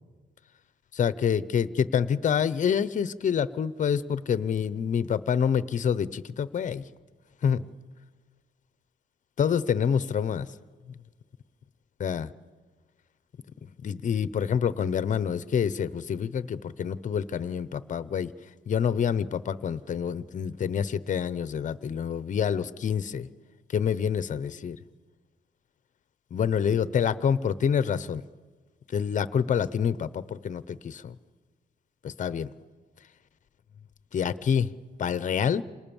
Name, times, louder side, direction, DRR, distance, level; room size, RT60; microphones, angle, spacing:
voice 1, 0.9-6.9 7.4-7.6 9.4-10.5 10.9-11.0 12.0-12.3 13.8-18.3 18.7-23.3 23.7-24.8 26.3-28.2 28.9-31.1 32.0-32.5 34.1-34.7 35.0-35.6, left 7 dB, 40° left, 16 dB, 0.9 m, -27 dB
28.5 x 26.5 x 7.2 m, 1.4 s
wide cardioid pair, 165°, 19 cm